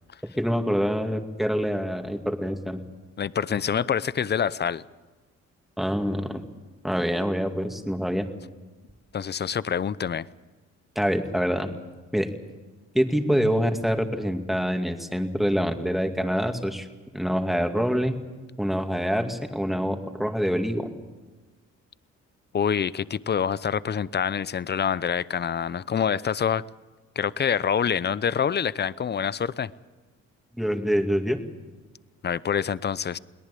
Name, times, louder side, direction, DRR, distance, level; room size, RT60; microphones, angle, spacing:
voice 1, 0.4-2.8 5.8-6.4 6.8-8.3 11.0-11.7 12.1-12.3 12.9-16.9 17.1-18.1 18.6-20.9 30.6-31.4, equal, ahead, 5 dB, 2.4 m, -25 dB
voice 2, 3.2-4.8 9.1-10.3 22.5-26.6 27.2-29.7 32.2-33.2, left 7 dB, 35° left, 18 dB, 0.7 m, -26 dB
22.5 x 18.5 x 8.5 m, 1.3 s
cardioid pair, 90°, 30 cm